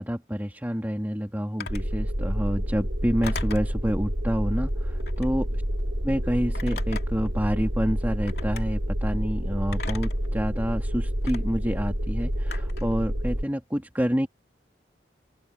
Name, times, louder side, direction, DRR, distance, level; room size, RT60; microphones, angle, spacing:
voice 1, 0.0-5.5 6.0-14.3, equal, 10° right, 2.7 m, -28 dB
Telephone, 1.6-1.9 3.2-3.7 5.0-5.4 6.5-7.3 8.3-8.6 9.7-10.3 11.3-11.4 12.5-12.9, left 3 dB, 60° left, 2.9 m, -37 dB
sound 1, 1.7-13.4, equal, 85° right, 5.4 m, -28 dB
open air
head